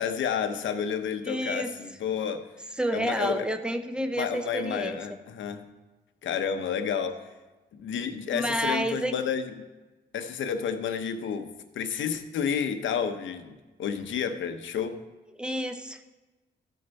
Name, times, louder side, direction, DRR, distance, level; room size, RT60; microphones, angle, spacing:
voice 1, 0.0-2.5 2.9-3.5 4.2-5.6 6.2-7.2 7.7-9.7 10.1-15.0, left 7 dB, 80° left, 8 dB, 0.9 m, -30 dB
voice 2, 1.3-1.7 2.8-5.0 8.3-9.2 15.4-16.1, equal, 5° right, 7 dB, 0.7 m, -29 dB
15.0 x 6.5 x 4.1 m, 1.2 s
cardioid pair, 120°, 19 cm